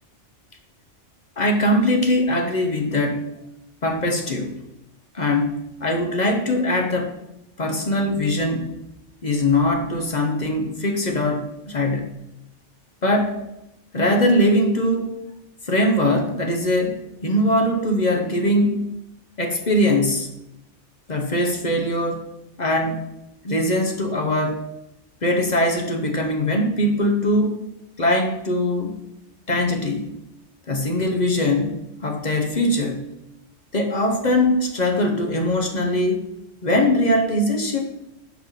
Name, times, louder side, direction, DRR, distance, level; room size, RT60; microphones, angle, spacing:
voice 1, 1.4-3.3 3.8-4.6 5.1-7.1 7.6-8.7 9.2-12.1 13.0-13.4 13.9-15.2 15.6-18.8 19.4-20.3 21.1-22.2 22.6-23.0 23.4-24.6 25.2-27.6 28.0-28.9 29.5-30.1 30.7-33.0 33.7-36.2 36.6-37.8, left 1 dB, 40° left, 3 dB, 0.9 m, -21 dB
5.9 x 5.5 x 5.6 m, 0.89 s
omnidirectional pair, 1.2 m